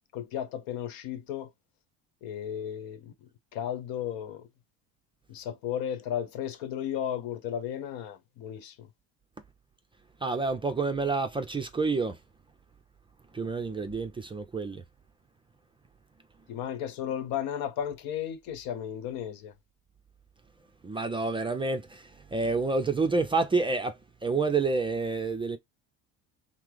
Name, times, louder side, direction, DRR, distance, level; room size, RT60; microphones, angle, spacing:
voice 1, 0.1-1.5 2.2-4.5 5.3-8.9 16.5-19.5, left 9 dB, 75° left, 0.9 m, -34 dB
voice 2, 10.2-12.2 13.3-14.8 20.8-23.9 24.2-25.6, right 3 dB, 15° right, 0.4 m, -28 dB
5.8 x 2.0 x 3.3 m
cardioid pair, 125°, 36 cm